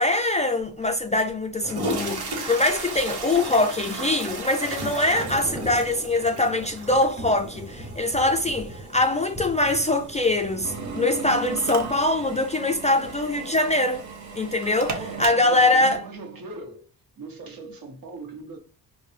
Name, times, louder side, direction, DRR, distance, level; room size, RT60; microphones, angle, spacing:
voice 1, 0.0-14.0 14.3-16.0, left 2 dB, 20° left, 0.3 m, -23 dB
sound 1, 0.8-0.9 1.5-15.1, right 2 dB, 80° right, 1.0 m, -37 dB
Thunder / Rain, 3.3-13.2 13.5-13.8, right 1 dB, 10° right, 0.9 m, -41 dB
voice 2, 5.6-5.9 15.0-16.9 17.2-18.6, right 3 dB, 60° right, 1.1 m, -39 dB
Drill, 10.6-15.7, right 4 dB, 45° right, 0.8 m, -35 dB
4.2 x 2.1 x 3.3 m
cardioid pair, 85°, 39 cm